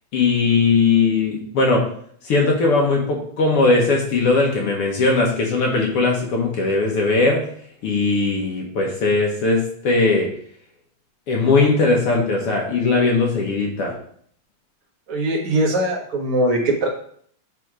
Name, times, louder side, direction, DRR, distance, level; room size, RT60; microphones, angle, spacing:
voice 1, 0.1-1.8 2.2-7.5 7.8-10.3 11.3-13.9, left 3 dB, 60° left, -1 dB, 1.7 m, -19 dB
voice 2, 15.1-16.9, right 1 dB, 50° right, -2 dB, 2.2 m, -21 dB
9.4 x 3.4 x 4.9 m, 0.62 s
omnidirectional pair, 3.5 m